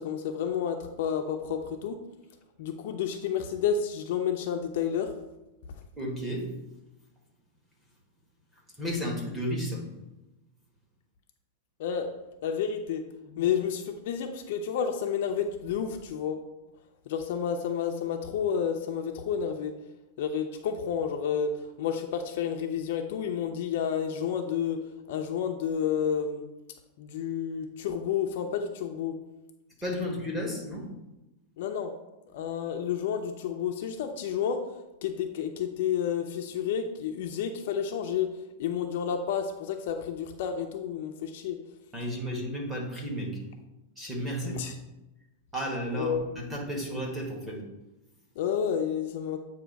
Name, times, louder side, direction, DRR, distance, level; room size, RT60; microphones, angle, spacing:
voice 1, 0.0-2.0 2.6-5.1 11.8-12.1 12.4-13.0 13.4-16.4 17.1-19.7 20.2-21.5 21.8-24.8 25.1-26.4 27.0-29.1 30.5-30.6 31.6-31.9 32.3-34.6 35.0-38.3 38.6-41.6 44.4-44.7 45.9-46.3 48.4-49.4, left 8 dB, 50° left, 5 dB, 0.5 m, -30 dB
voice 2, 5.9-6.5 8.8-9.8 13.3-13.5 29.8-30.9 41.9-43.4 44.0-44.7 45.5-47.6, equal, 5° right, -2 dB, 1.0 m, -33 dB
7.9 x 2.7 x 5.1 m, 0.98 s
supercardioid pair, 180°, 0 cm